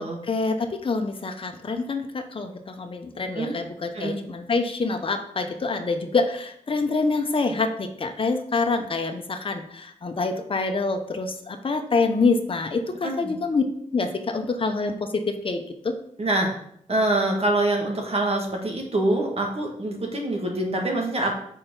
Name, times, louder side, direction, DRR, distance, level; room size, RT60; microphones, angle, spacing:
voice 1, 0.3-13.6 13.9-15.9, left 3 dB, 40° left, 5 dB, 0.9 m, -26 dB
voice 2, 13.0-13.3 16.2-16.5 16.9-21.3, right 2 dB, 45° right, 0 dB, 1.9 m, -25 dB
6.3 x 4.5 x 5.5 m, 0.69 s
wide cardioid pair, 95°, 14 cm